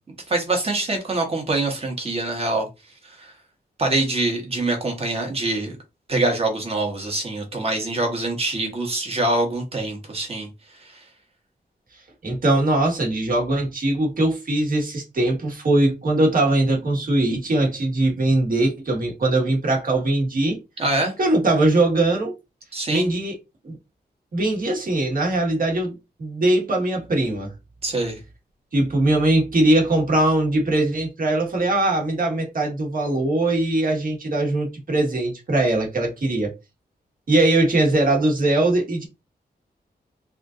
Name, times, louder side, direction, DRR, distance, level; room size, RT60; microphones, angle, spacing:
voice 1, 0.3-2.7 3.0-3.3 3.8-5.8 6.1-10.5 10.8-11.0 20.8-21.1 22.7-23.1 27.8-28.2, right 2 dB, 35° right, 1.3 m, -24 dB
voice 2, 12.2-20.6 21.2-22.3 22.9-23.4 23.6-23.8 24.3-25.9 26.2-27.5 28.7-36.5 37.3-39.1, right 2 dB, 55° right, 1.5 m, -21 dB
3.5 x 2.5 x 3.7 m
wide cardioid pair, 165°, 17 cm